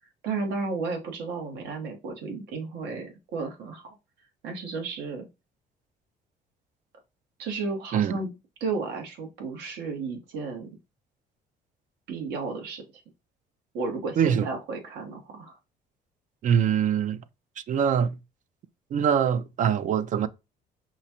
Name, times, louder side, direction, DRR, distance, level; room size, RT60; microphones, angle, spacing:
voice 1, 0.2-3.9 4.4-5.3 7.4-8.3 8.6-10.7 12.1-12.8 13.7-15.6, right 4 dB, 85° right, 1.6 m, -33 dB
voice 2, 16.4-17.2 17.7-18.2 18.9-20.3, right 8 dB, 50° right, 0.5 m, -23 dB
5.5 x 2.4 x 2.8 m
cardioid pair, 110°, 17 cm